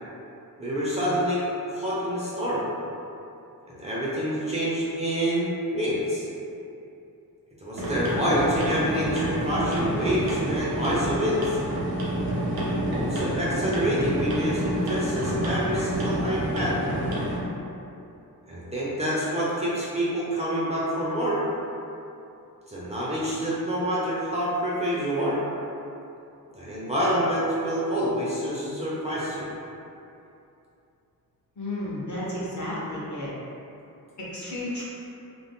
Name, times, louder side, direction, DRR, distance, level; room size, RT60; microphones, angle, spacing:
voice 1, 0.6-2.7 3.7-6.2 7.6-11.6 12.9-16.8 18.5-21.4 22.7-25.4 26.5-29.5, equal, 20° right, -8 dB, 0.5 m, -27 dB
sound 1, 7.7-17.4, right 1 dB, 80° right, 0.7 m, -28 dB
voice 2, 31.6-33.3 34.2-34.8, left 1 dB, 55° left, -7 dB, 0.8 m, -32 dB
2.5 x 2.3 x 3.5 m, 2.7 s
wide cardioid pair, 150°, 35 cm